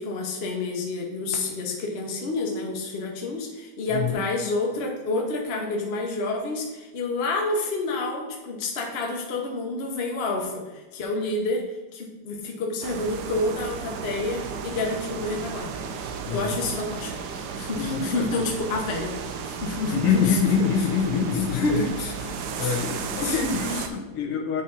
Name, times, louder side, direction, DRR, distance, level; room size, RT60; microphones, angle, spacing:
voice 1, 0.0-20.7 21.1-23.4, left 2 dB, 40° left, 0 dB, 1.0 m, -29 dB
voice 2, 3.9-4.2 16.3-16.6 17.8-18.3 19.9-21.8 22.5-24.6, left 6 dB, 90° left, 0 dB, 2.0 m, -25 dB
sound 1, 12.8-23.9, right 6 dB, 75° right, 0.9 m, -34 dB
9.1 x 4.2 x 4.0 m, 1.2 s
omnidirectional pair, 2.4 m